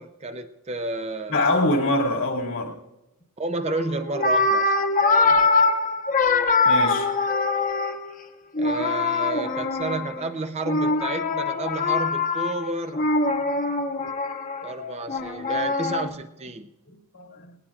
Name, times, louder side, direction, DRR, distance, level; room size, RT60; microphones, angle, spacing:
voice 1, 0.0-1.4 3.4-4.7 8.6-13.1 14.6-16.7, right 3 dB, 30° right, 0.7 m, -31 dB
voice 2, 1.3-2.8 6.6-7.1 16.9-17.6, left 2 dB, 75° left, 2.4 m, -24 dB
sound 1, 3.7-3.8 4.1-8.2 8.5-10.3 10.6-16.1, left 3 dB, 35° left, 1.1 m, -23 dB
19.0 x 18.5 x 2.5 m
head